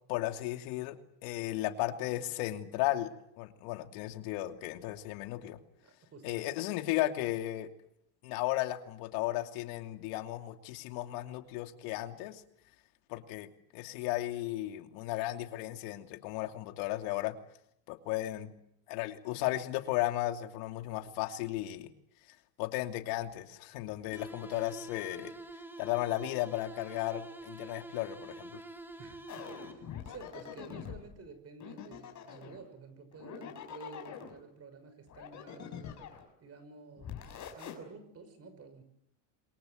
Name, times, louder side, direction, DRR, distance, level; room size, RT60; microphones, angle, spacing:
voice 1, 0.1-3.1 3.4-5.6 6.2-7.7 8.2-12.4 13.1-17.3 17.9-18.5 18.9-21.9 22.6-25.3 25.8-28.6, left 15 dB, 80° left, 6 dB, 2.9 m, -35 dB
voice 2, 5.8-6.5 29.0-36.0 36.4-38.8, right 4 dB, 30° right, 11 dB, 6.3 m, -51 dB
sound 1, 24.1-30.1, right 1 dB, 5° right, 2.1 m, -47 dB
sound 2, 29.3-31.0 31.6-32.6 33.1-34.4 35.1-36.3 37.0-37.7, left 8 dB, 40° left, 6.1 m, -44 dB
27.5 x 23.5 x 8.0 m, 0.77 s
cardioid pair, 135°, 46 cm